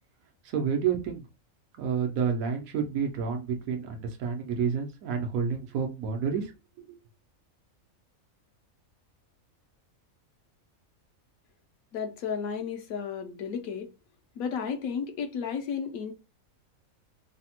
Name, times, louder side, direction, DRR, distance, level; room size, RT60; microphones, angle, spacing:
voice 1, 0.5-1.2 1.8-6.5 6.8-7.0, right 6 dB, 90° right, 1.1 m, -29 dB
voice 2, 11.9-13.9 14.4-16.1, left 6 dB, 80° left, 1.1 m, -33 dB
3.2 x 2.0 x 2.8 m
omnidirectional pair, 1.4 m